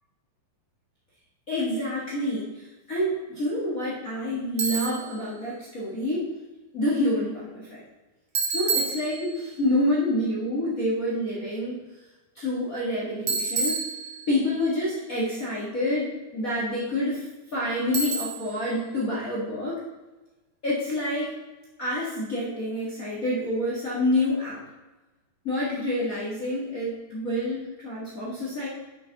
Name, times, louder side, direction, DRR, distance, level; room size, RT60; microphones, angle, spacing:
voice 1, 1.5-6.3 6.7-7.8 8.5-11.8 12.3-13.8 14.3-17.2 17.5-19.8 20.6-21.3 21.8-24.6 25.4-28.7, left 1 dB, 55° left, -7 dB, 0.9 m, -27 dB
Bicycle, 4.6-5.1 8.4-9.6 13.3-14.5 17.9-18.6, right 4 dB, 50° right, 1.7 m, -29 dB
7.9 x 6.3 x 4.0 m, 1.1 s
omnidirectional pair, 4.6 m